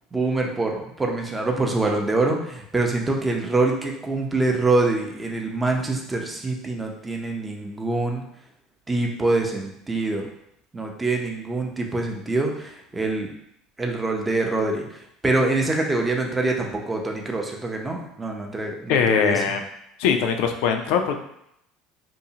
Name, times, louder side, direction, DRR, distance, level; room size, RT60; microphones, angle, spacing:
voice 1, 0.1-8.2 8.9-10.3 10.7-13.3 13.8-14.8 15.2-19.4, right 2 dB, 15° right, 1 dB, 0.5 m, -25 dB
voice 2, 18.9-19.6 20.0-21.2, left 7 dB, 75° left, 6 dB, 0.3 m, -21 dB
2.7 x 2.0 x 2.7 m, 0.77 s
supercardioid pair, 95°, 0 cm